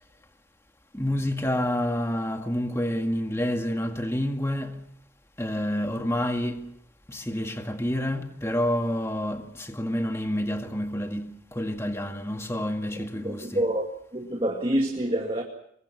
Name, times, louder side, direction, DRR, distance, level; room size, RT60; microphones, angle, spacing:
voice 1, 0.9-4.8 5.4-6.7 7.1-13.7, left 1 dB, 15° left, 1.9 m, -28 dB
voice 2, 13.2-13.9 14.1-15.4, right 1 dB, 25° right, 2.2 m, -27 dB
26.5 x 22.5 x 6.2 m
head